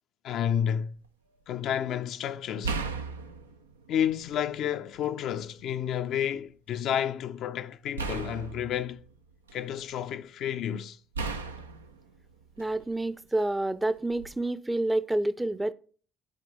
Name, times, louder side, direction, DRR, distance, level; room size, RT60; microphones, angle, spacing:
voice 1, 0.2-0.9 1.5-2.8 3.9-9.0 9.5-11.0, left 9 dB, 60° left, 0.5 m, -30 dB
sound 1, 0.8-1.1 2.6-4.5 4.9-5.9 8.0-9.9 11.1-13.0 14.1-14.3, right 4 dB, 90° right, 0.5 m, -37 dB
voice 2, 12.6-15.7, right 1 dB, 10° right, 0.5 m, -28 dB
11.0 x 4.4 x 3.9 m
hypercardioid pair, 50°, 0 cm